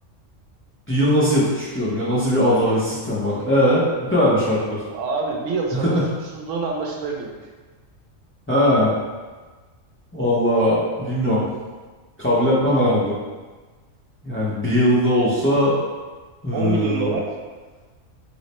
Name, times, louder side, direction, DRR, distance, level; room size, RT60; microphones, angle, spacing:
voice 1, 0.9-4.8 5.7-6.0 8.5-8.9 10.1-11.4 12.2-13.1 14.2-15.8 16.4-17.1, equal, 20° left, -8 dB, 0.3 m, -19 dB
voice 2, 4.9-7.3 16.5-17.3, right 4 dB, 75° right, 0 dB, 1.0 m, -26 dB
3.1 x 2.0 x 4.1 m, 1.3 s
omnidirectional pair, 1.4 m